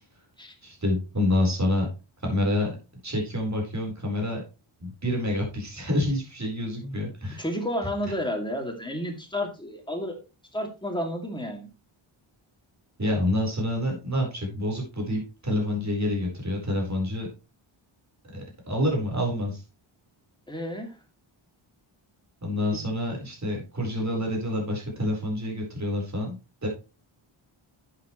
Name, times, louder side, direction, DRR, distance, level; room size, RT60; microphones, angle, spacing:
voice 1, 0.6-1.9 2.2-2.7 3.0-4.4 4.8-7.4 13.0-17.3 18.3-19.6 22.4-26.4 26.6-26.7, left 1 dB, 35° right, 0 dB, 4.3 m, -27 dB
voice 2, 7.4-10.2 10.5-11.7 20.5-21.0, equal, 10° left, 2 dB, 2.4 m, -31 dB
11.0 x 7.7 x 3.1 m, 0.30 s
wide cardioid pair, 135°, 50 cm